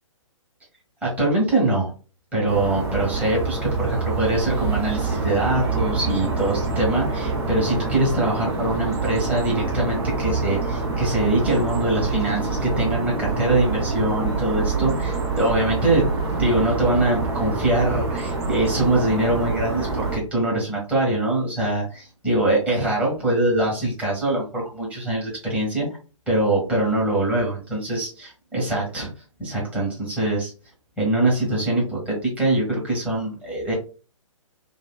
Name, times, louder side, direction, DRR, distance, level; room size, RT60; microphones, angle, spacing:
voice 1, 1.0-1.9 2.3-25.9 26.3-29.1 29.4-30.5 31.0-33.7, right 1 dB, 5° right, -4 dB, 1.3 m, -23 dB
sound 1, 2.5-20.2, right 3 dB, 55° right, 0.9 m, -26 dB
2.8 x 2.8 x 2.3 m, 0.35 s
figure-of-eight pair, 130°, 17 cm